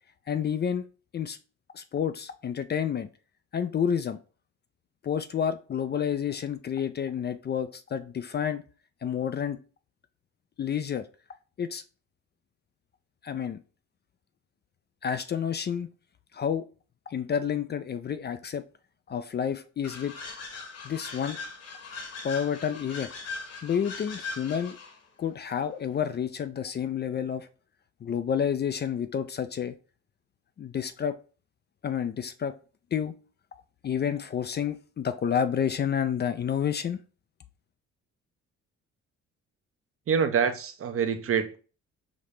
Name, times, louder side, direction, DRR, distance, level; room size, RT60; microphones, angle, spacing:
voice 1, 0.3-0.8 1.1-1.4 1.7-3.1 3.5-4.2 5.0-8.6 9.0-9.6 10.6-11.0 11.6-11.8 13.2-13.6 15.0-15.9 16.3-16.6 17.1-18.6 19.1-20.1 20.8-21.4 22.2-23.1 23.6-24.8 25.2-27.5 28.0-29.7 30.6-31.2 31.8-32.5 32.9-33.1 33.8-37.0, left 8 dB, 35° left, 0.4 m, -29 dB
sound 1, 19.8-25.0, left 4 dB, 55° left, 1.2 m, -40 dB
voice 2, 40.1-41.6, right 6 dB, 45° right, 0.7 m, -26 dB
5.1 x 2.8 x 3.1 m
cardioid pair, 90°, 30 cm